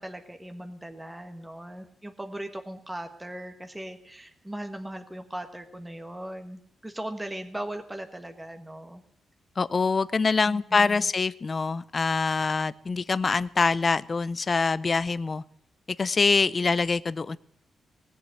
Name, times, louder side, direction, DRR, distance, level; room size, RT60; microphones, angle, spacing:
voice 1, 0.0-9.0 10.5-11.1, right 1 dB, 10° right, 5 dB, 1.4 m, -39 dB
voice 2, 9.6-15.4 16.0-17.4, left 4 dB, 30° left, 17 dB, 0.6 m, -25 dB
19.0 x 7.5 x 9.5 m, 0.69 s
wide cardioid pair, 165°, 0 cm